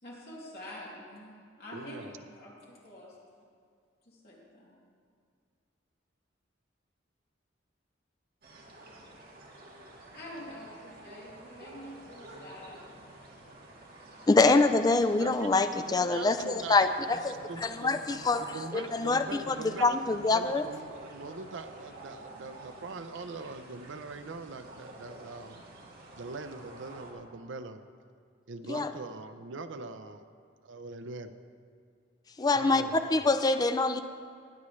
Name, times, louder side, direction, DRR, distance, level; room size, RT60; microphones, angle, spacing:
voice 1, 0.0-3.2 4.0-4.8 10.1-12.8, left 1 dB, 55° left, -5 dB, 3.0 m, -46 dB
voice 2, 1.7-2.2 15.2-17.0 17.3-25.6 26.2-27.8 28.5-30.2 30.6-31.3 32.5-33.0, right 3 dB, 75° right, 9 dB, 0.5 m, -42 dB
sound 1, 8.4-27.1, right 2 dB, 50° right, 1.8 m, -50 dB
voice 3, 14.3-18.4 18.7-19.6 19.8-20.7 28.7-28.9 32.4-34.0, left 3 dB, 20° left, 9 dB, 0.4 m, -25 dB
19.5 x 8.3 x 3.2 m, 2.2 s
head